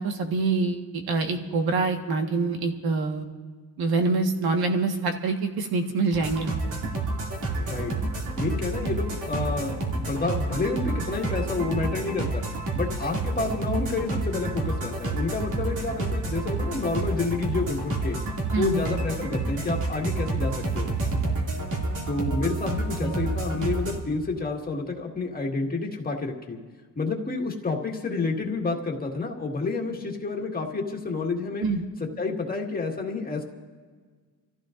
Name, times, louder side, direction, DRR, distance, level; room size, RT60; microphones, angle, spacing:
voice 1, 0.0-3.3 3.8-6.5 18.5-18.9 23.0-23.1 31.6-31.8, right 3 dB, 75° right, 4 dB, 1.6 m, -25 dB
sound 1, 6.1-24.0, right 2 dB, 55° right, 2.6 m, -29 dB
voice 2, 7.6-7.9 8.4-12.5 12.7-18.2 18.6-20.9 22.1-26.6 27.0-31.7 32.2-33.4, left 3 dB, 25° left, 0 dB, 1.9 m, -29 dB
29.0 x 15.0 x 2.6 m, 1.5 s
cardioid pair, 140°, 38 cm